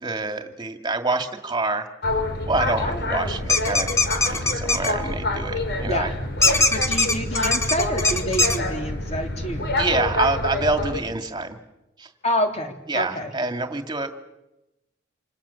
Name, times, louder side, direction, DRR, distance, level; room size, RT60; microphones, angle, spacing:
voice 1, 0.0-1.9 2.5-3.9 4.3-6.1 6.4-6.7 9.8-11.6 12.0-12.1 12.9-14.1, right 3 dB, 25° right, 5 dB, 2.3 m, -26 dB
Boat Water vehicle, 2.0-11.0, left 1 dB, 60° left, 4.4 m, -27 dB
voice 2, 2.8-3.4 5.9-6.2 6.7-9.7 12.2-13.3, equal, 35° left, 3 dB, 3.7 m, -28 dB
sound 1, 3.5-4.9 6.4-8.6, left 3 dB, 15° left, 1.5 m, -20 dB
29.0 x 27.0 x 7.1 m, 0.96 s
head